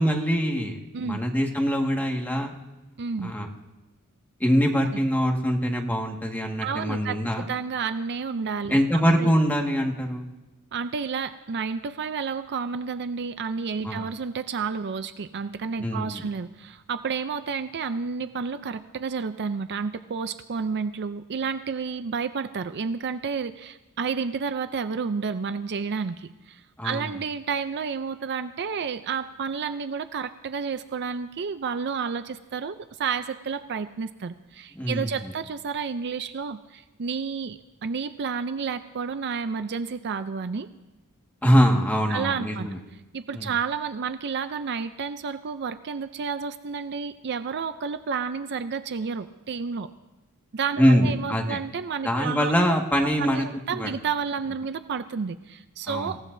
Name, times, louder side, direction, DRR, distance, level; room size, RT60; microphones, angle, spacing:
voice 1, 0.0-2.5 3.2-3.5 4.4-7.4 8.7-10.2 13.8-14.1 15.8-16.2 26.8-27.0 34.8-35.3 41.4-42.8 43.3-43.5 50.8-51.6 52.0-53.5 53.7-53.9 55.9-56.1, equal, 10° left, 1 dB, 1.8 m, -23 dB
voice 2, 3.0-3.3 4.9-5.0 6.6-9.3 10.7-40.7 42.1-42.7 43.1-49.9 50.5-52.5 53.2-56.2, right 5 dB, 50° right, 11 dB, 0.5 m, -31 dB
26.5 x 16.0 x 2.7 m, 1.1 s
head